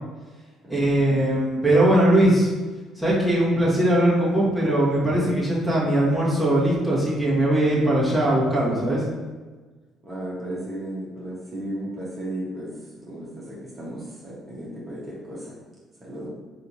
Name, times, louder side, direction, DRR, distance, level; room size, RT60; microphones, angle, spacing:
voice 1, 0.7-2.5 3.0-9.0, right 1 dB, ahead, -7 dB, 1.4 m, -20 dB
voice 2, 10.0-12.7 13.0-15.6 16.0-16.3, right 1 dB, 35° right, -7 dB, 1.3 m, -34 dB
3.4 x 2.8 x 2.8 m, 1.3 s
hypercardioid pair, 50°, 0 cm